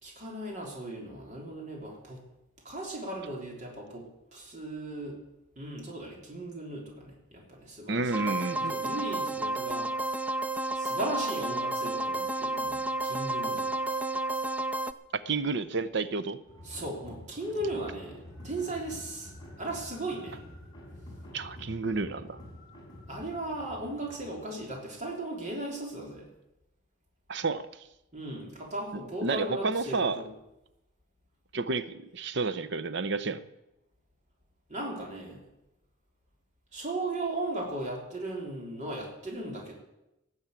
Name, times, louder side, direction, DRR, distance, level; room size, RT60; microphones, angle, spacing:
voice 1, 0.0-2.2 2.7-5.2 5.6-8.0 8.6-9.9 10.7-13.7 16.7-19.3 19.6-20.4 23.1-26.3 28.1-30.3 34.7-35.4 36.7-39.7, right 1 dB, 40° right, -1 dB, 3.5 m, -37 dB
voice 2, 7.9-8.8 15.1-16.4 21.3-22.4 27.3-27.9 28.9-30.2 31.5-33.4, right 3 dB, 60° right, 14 dB, 0.8 m, -31 dB
sound 1, 8.1-14.9, right 2 dB, 5° right, 0.4 m, -31 dB
sound 2, 16.5-24.9, left 1 dB, 20° left, 4.8 m, -48 dB
18.0 x 7.2 x 8.2 m, 0.91 s
head